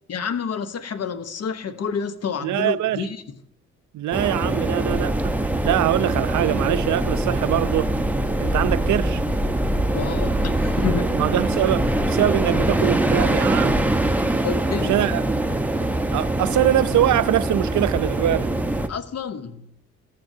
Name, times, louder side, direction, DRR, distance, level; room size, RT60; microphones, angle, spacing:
voice 1, 0.1-3.2 9.9-11.1 14.4-15.0 18.9-19.7, left 6 dB, 55° left, 1.1 m, -29 dB
voice 2, 2.4-3.1 3.9-5.4 5.6-7.9 8.4-9.2 11.1-14.0 14.9-15.2 16.1-18.5, right 13 dB, 75° right, 0.6 m, -23 dB
sound 1, 4.1-18.9, right 1 dB, 5° right, 1.1 m, -24 dB
sound 2, 4.9-14.3, equal, 20° left, 4.8 m, -29 dB
14.5 x 14.0 x 2.8 m
cardioid pair, 65°, 30 cm